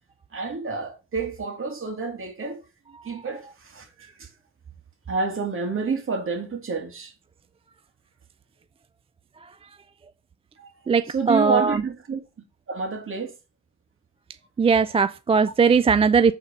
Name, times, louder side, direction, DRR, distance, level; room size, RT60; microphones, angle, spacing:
voice 1, 0.3-2.6 3.0-4.3 5.1-7.1 10.6-10.7 11.1-12.2 12.7-13.3, right 4 dB, 45° right, 2.5 m, -29 dB
voice 2, 10.9-11.8 14.6-16.3, right 5 dB, 20° right, 0.4 m, -19 dB
7.9 x 4.4 x 5.2 m
cardioid pair, 90°, 30 cm